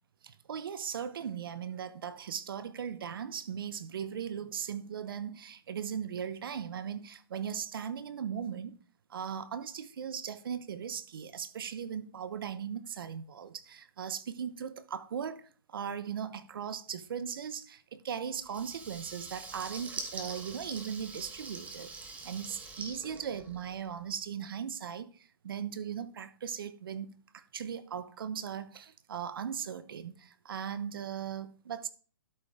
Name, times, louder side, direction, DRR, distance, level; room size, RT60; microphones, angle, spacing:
voice 1, 0.2-8.7 9.1-27.1 27.3-31.9, right 8 dB, 70° right, 0.9 m, -38 dB
Water tap faucet / Liquid, 18.4-24.0, right 3 dB, 10° right, 1.3 m, -44 dB
12.0 x 5.2 x 3.6 m
hypercardioid pair, 135°, 12 cm